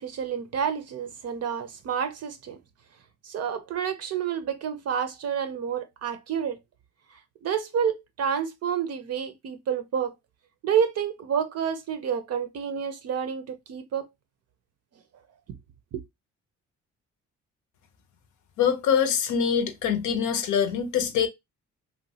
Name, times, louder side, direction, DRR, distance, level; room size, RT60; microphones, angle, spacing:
voice 1, 0.0-2.6 3.2-6.6 7.4-10.1 10.6-14.1 15.9-16.0, right 7 dB, 55° right, 0.5 m, -29 dB
voice 2, 18.6-21.3, left 7 dB, 75° left, 0.6 m, -24 dB
3.0 x 2.1 x 2.7 m
cardioid pair, 90°, 30 cm